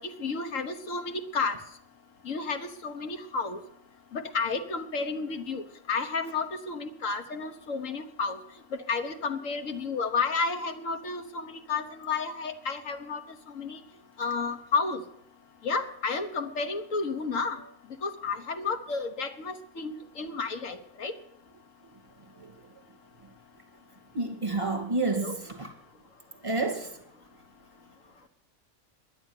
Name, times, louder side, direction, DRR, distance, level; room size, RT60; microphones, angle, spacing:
voice 1, 0.0-1.6 2.2-3.6 4.1-5.6 5.9-8.4 8.9-13.2 13.5-13.8 14.2-15.0 15.6-17.6 18.0-21.1 25.1-25.4, left 4 dB, 70° left, 1.5 m, -31 dB
voice 2, 24.1-25.7 26.4-26.9, right 3 dB, 25° right, 2.4 m, -29 dB
11.0 x 10.5 x 9.7 m
omnidirectional pair, 1.4 m